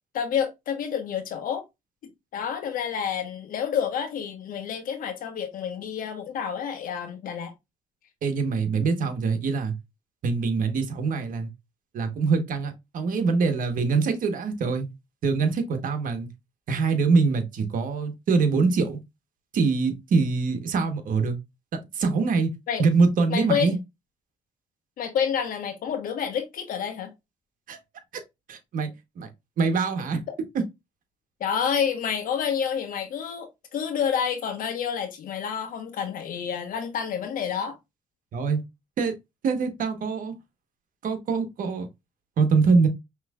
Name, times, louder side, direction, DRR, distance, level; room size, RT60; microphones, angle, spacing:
voice 1, 0.1-1.6 2.3-7.5 22.7-22.8 23.3-23.7 25.0-27.1 31.4-37.7, left 7 dB, 80° left, 1.1 m, -29 dB
voice 2, 8.2-9.7 10.2-11.5 11.9-14.9 15.2-16.3 16.7-19.0 19.5-21.4 21.9-22.5 22.8-23.8 27.7-27.8 28.5-28.9 29.2-29.3 29.6-30.2 38.3-38.6 39.0-39.1 39.4-40.3 41.0-41.9 42.4-42.9, right 4 dB, 70° right, 1.1 m, -24 dB
5.8 x 3.1 x 2.3 m
cardioid pair, 70°, 14 cm